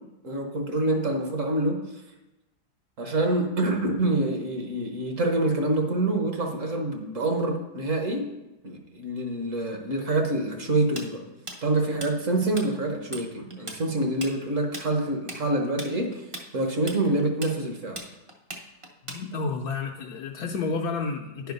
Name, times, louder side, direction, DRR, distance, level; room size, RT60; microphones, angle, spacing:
voice 1, 0.2-1.8 3.0-8.2 8.6-11.2 11.6-16.2 16.5-18.0, right 2 dB, 50° right, 3 dB, 1.3 m, -26 dB
Tools, 11.0-12.7 12.9-13.3 13.5-19.6, right 1 dB, 25° right, 0.6 m, -38 dB
voice 2, 19.0-21.5, left 4 dB, 70° left, 1 dB, 1.1 m, -30 dB
9.9 x 4.8 x 5.3 m, 1.0 s
omnidirectional pair, 1.8 m